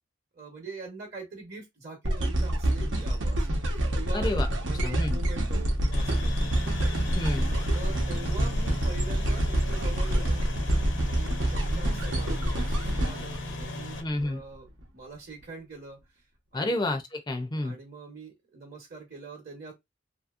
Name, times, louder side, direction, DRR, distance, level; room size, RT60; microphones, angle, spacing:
voice 1, 0.3-3.5 4.0-4.3 4.6-6.6 7.5-10.4 11.0-16.2 16.5-16.8 17.5-19.7, right 3 dB, 50° right, 1.0 m, -43 dB
sound 1, 2.0-14.2 14.8-14.9, right 1 dB, 85° right, 0.9 m, -27 dB
voice 2, 4.1-4.5 4.8-5.2 7.2-7.5 14.0-14.4 16.5-17.8, left 1 dB, 25° left, 0.5 m, -30 dB
sound 2, 5.9-14.0, left 2 dB, 70° left, 0.7 m, -37 dB
2.8 x 2.7 x 2.4 m
head